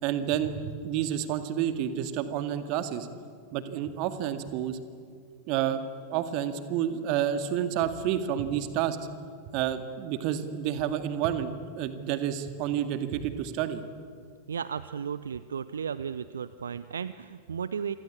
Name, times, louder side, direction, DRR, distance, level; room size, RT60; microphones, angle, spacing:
voice 1, 0.0-3.1 3.5-4.8 5.5-5.8 6.1-9.0 9.5-11.5 11.8-13.8, right 10 dB, 45° right, 10 dB, 2.1 m, -29 dB
voice 2, 14.5-18.0, right 7 dB, 70° right, 15 dB, 0.6 m, -34 dB
28.0 x 23.5 x 8.6 m, 2.2 s
figure-of-eight pair, 90°, 0 cm